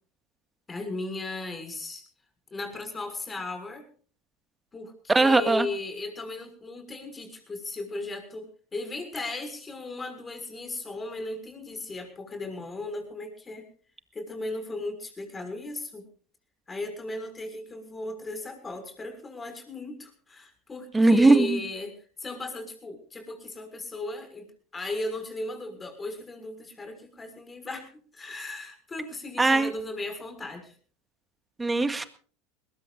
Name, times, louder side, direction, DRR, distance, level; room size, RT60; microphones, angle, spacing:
voice 1, 0.7-2.0 2.5-3.9 4.7-13.7 14.1-16.0 16.7-21.9 22.2-24.5 24.7-30.7, left 2 dB, 20° left, 6 dB, 6.5 m, -36 dB
voice 2, 5.1-5.7 20.9-21.6 29.4-29.7 31.6-32.1, right 2 dB, 15° right, 9 dB, 1.9 m, -20 dB
21.0 x 21.0 x 2.6 m, 0.42 s
hypercardioid pair, 90°, 0 cm